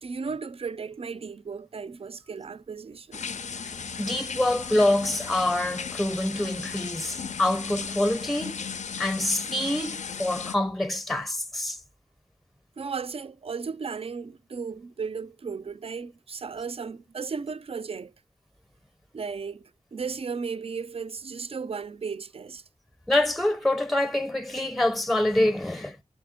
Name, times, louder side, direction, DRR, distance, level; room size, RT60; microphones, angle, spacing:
voice 1, 0.0-3.3 12.8-18.1 19.1-22.6, right 5 dB, 50° right, 0.4 m, -35 dB
sound 1, 3.1-10.6, left 6 dB, 65° left, 0.4 m, -36 dB
voice 2, 3.7-8.6 9.0-11.8 23.1-26.0, left 1 dB, ahead, 0.6 m, -26 dB
6.0 x 4.3 x 5.0 m
wide cardioid pair, 95°, 13 cm